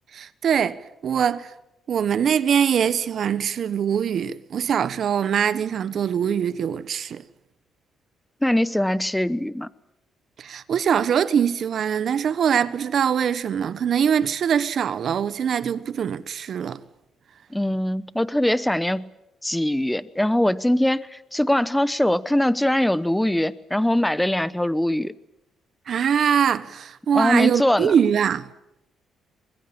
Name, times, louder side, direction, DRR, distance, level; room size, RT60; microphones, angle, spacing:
voice 1, 0.1-1.5 1.9-7.2 10.4-16.8 25.9-28.5, right 8 dB, 60° right, 1.0 m, -23 dB
voice 2, 8.4-9.7 17.5-19.1 19.4-25.1 27.1-27.9, left 1 dB, 5° left, 1.0 m, -22 dB
24.0 x 21.0 x 8.7 m
cardioid pair, 90°, 0 cm